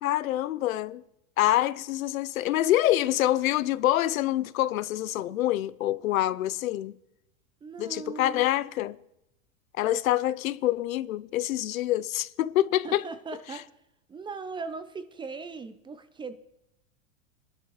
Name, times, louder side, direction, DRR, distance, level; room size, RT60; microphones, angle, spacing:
voice 1, 0.0-1.0 1.4-7.0 7.8-9.0 9.8-13.1, left 14 dB, 85° left, 0.7 m, -26 dB
voice 2, 7.6-8.5 12.8-13.7 14.1-16.3, right 4 dB, 10° right, 0.5 m, -39 dB
22.0 x 11.5 x 3.1 m
supercardioid pair, 125°, 40 cm